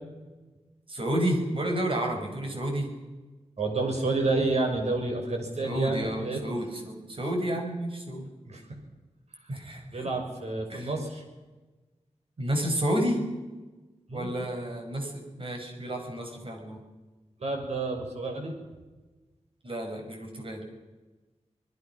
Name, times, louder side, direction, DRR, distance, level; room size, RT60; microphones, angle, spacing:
voice 1, 0.9-2.9 5.6-8.3 9.5-10.1 10.7-10.9 12.4-13.2 14.1-16.8 19.6-20.6, right 1 dB, 50° right, 3 dB, 5.7 m, -30 dB
voice 2, 3.6-6.4 8.5-8.6 9.9-11.2 14.1-14.3 17.4-18.5, right 3 dB, 65° right, 2 dB, 6.3 m, -29 dB
26.5 x 21.0 x 6.1 m, 1.2 s
wide cardioid pair, 115°, 12 cm